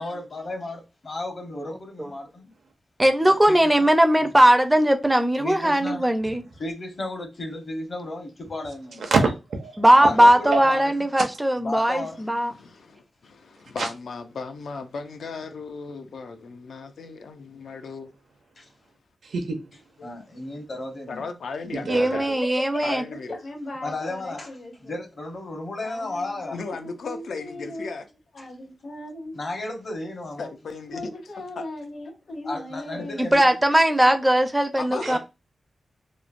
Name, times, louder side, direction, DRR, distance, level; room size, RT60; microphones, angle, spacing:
voice 1, 0.0-2.5 3.2-3.9 5.4-6.1 6.6-9.1 10.0-10.8 11.6-12.2 12.6-12.8 18.6-18.7 20.0-21.3 23.8-26.6 28.4-28.5 29.3-30.5 31.0-31.1 32.4-33.5 35.1-35.2, left 2 dB, 55° left, 0.9 m, -34 dB
voice 2, 3.0-6.4 9.8-12.5 21.9-23.0 33.2-35.2, right 1 dB, 10° right, 0.4 m, -19 dB
voice 3, 9.0-9.8 10.5-10.6 13.8-13.9 19.2-19.6 21.9-22.4 35.0-35.1, right 4 dB, 80° right, 0.6 m, -25 dB
voice 4, 12.5-18.1 20.0-20.1 20.5-20.6 21.1-22.3 22.8-23.4 26.5-28.1 30.4-31.1 31.6-31.7 34.8-35.2, left 4 dB, 85° left, 0.4 m, -36 dB
voice 5, 23.4-25.0 25.8-27.9 28.3-29.3 30.9-33.4 35.0-35.1, left 1 dB, 70° left, 1.2 m, -38 dB
3.0 x 2.1 x 2.4 m
wide cardioid pair, 140°, 0 cm